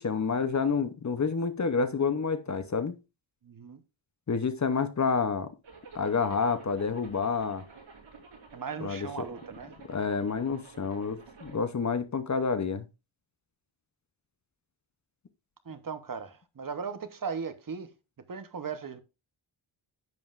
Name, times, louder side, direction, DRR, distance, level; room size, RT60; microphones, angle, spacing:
voice 1, 0.0-2.9 4.3-5.5 5.9-7.6 8.8-9.1 9.9-12.9, left 5 dB, 35° left, 0.7 m, -28 dB
voice 2, 3.4-3.8 8.5-9.7 15.7-17.9 18.3-19.0, right 6 dB, 45° right, 0.9 m, -37 dB
Zipper (clothing), 5.6-11.6, right 4 dB, 80° right, 4.9 m, -50 dB
10.5 x 7.6 x 2.4 m
wide cardioid pair, 165°, 47 cm